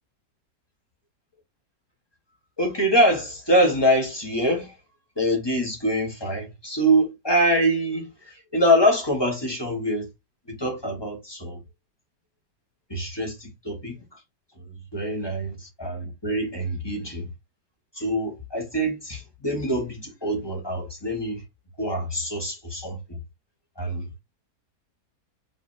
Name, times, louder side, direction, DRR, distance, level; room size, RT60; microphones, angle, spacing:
voice 1, 2.6-4.7 5.2-10.1 10.5-11.6 12.9-14.0 14.6-17.3 18.0-21.4 21.8-23.2 23.8-24.2, equal, 15° left, 1.6 m, -24 dB
5.4 x 3.2 x 2.9 m
omnidirectional pair, 1.7 m